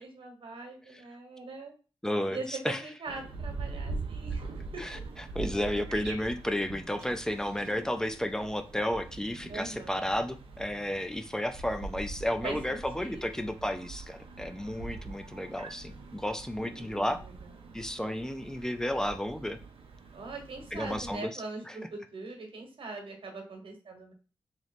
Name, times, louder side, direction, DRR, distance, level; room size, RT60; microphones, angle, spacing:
voice 1, 0.0-1.7 2.3-4.4 4.7-5.2 9.5-10.0 12.4-13.5 16.6-17.8 20.1-24.1, right 3 dB, 70° right, 3 dB, 1.2 m, -42 dB
voice 2, 2.0-2.8 4.8-5.0 5.3-17.2 17.7-19.6 20.7-21.3 21.7-21.8, left 1 dB, 5° left, 8 dB, 0.4 m, -32 dB
sound 1, 3.1-21.1, right 3 dB, 90° right, 0.6 m, -43 dB
3.1 x 3.0 x 4.1 m, 0.36 s
wide cardioid pair, 85°, 9 cm